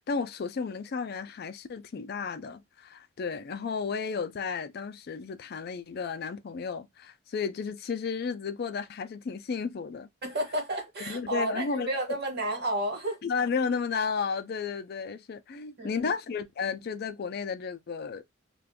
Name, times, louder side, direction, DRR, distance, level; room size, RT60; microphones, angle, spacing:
voice 1, 0.1-10.1 11.1-12.2 13.2-18.2, left 5 dB, 50° left, 0.4 m, -33 dB
voice 2, 10.2-13.2 15.8-16.1, right 1 dB, 50° right, 1.1 m, -31 dB
2.5 x 2.3 x 3.5 m
head